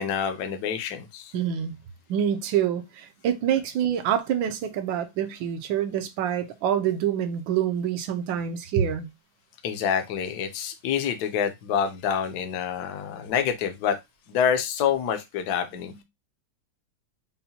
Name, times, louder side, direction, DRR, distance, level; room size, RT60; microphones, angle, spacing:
voice 1, 0.0-1.3 9.6-14.0 14.3-16.0, left 8 dB, 65° left, 1.1 m, -27 dB
voice 2, 1.3-1.8 2.1-9.1 15.8-16.0, right 9 dB, 75° right, 1.4 m, -26 dB
5.5 x 2.2 x 2.7 m
omnidirectional pair, 2.1 m